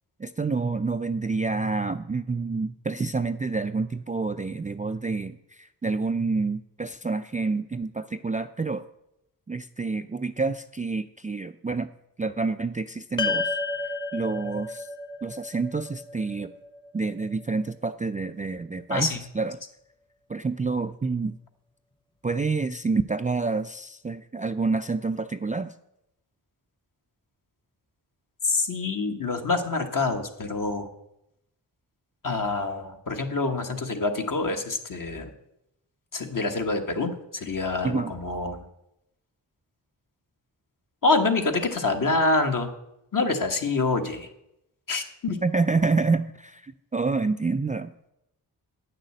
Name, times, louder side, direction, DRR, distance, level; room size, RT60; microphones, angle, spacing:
voice 1, 0.2-8.8 9.5-11.9 12.2-13.6 14.1-14.9 15.2-16.5 16.9-19.6 20.3-21.4 22.2-25.7 37.8-38.1 45.4-48.1, right 4 dB, 20° right, 8 dB, 0.3 m, -28 dB
sound 1, 13.2-17.6, left 3 dB, 10° left, 0.9 m, -32 dB
voice 2, 18.9-19.2 28.4-30.9 32.2-35.3 36.1-38.6 41.0-42.7 43.1-44.3 44.9-45.4, left 3 dB, 50° left, 4 dB, 1.5 m, -26 dB
9.0 x 6.5 x 7.7 m, 0.84 s
cardioid pair, 75°, 41 cm